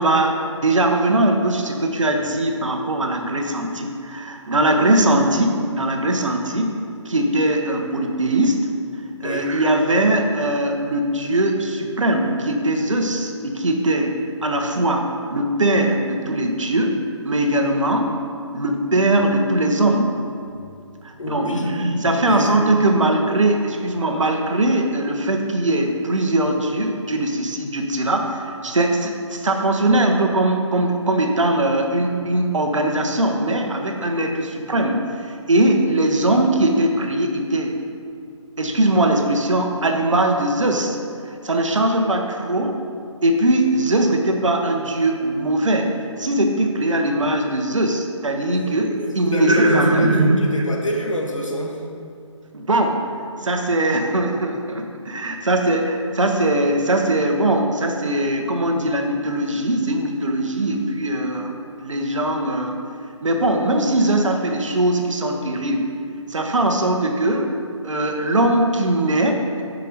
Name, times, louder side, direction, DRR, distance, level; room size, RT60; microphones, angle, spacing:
voice 1, 0.0-6.7 7.0-8.7 9.2-18.2 18.5-20.1 21.0-37.7 38.6-41.0 41.4-42.8 43.2-45.9 46.2-50.4 52.5-53.0 53.4-62.8 63.2-65.9 66.3-67.5 67.8-69.6, right 1 dB, 70° right, 3 dB, 1.1 m, -20 dB
voice 2, 21.2-21.7 22.1-22.5 48.4-48.6 49.3-51.8, left 1 dB, 75° left, -1 dB, 1.5 m, -27 dB
6.7 x 5.5 x 5.0 m, 2.4 s
figure-of-eight pair, 145°, 17 cm